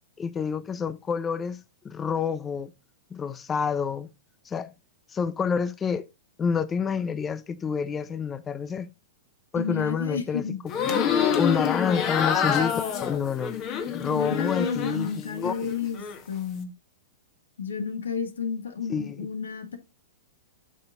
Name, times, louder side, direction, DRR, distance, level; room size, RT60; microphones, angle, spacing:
voice 1, 0.2-2.7 3.1-4.1 4.4-4.7 5.1-6.0 6.4-8.9 9.5-10.5 10.7-10.8 11.4-13.6 13.9-15.5 18.9-19.2, left 6 dB, 20° left, 0.5 m, -28 dB
voice 2, 9.6-10.6 14.1-16.0 16.3-16.7 17.6-19.8, left 6 dB, 80° left, 1.7 m, -31 dB
sound 1, 10.7-15.1 15.4-16.2, left 7 dB, 40° left, 1.7 m, -27 dB
8.5 x 5.6 x 3.8 m
hypercardioid pair, 110°, 0 cm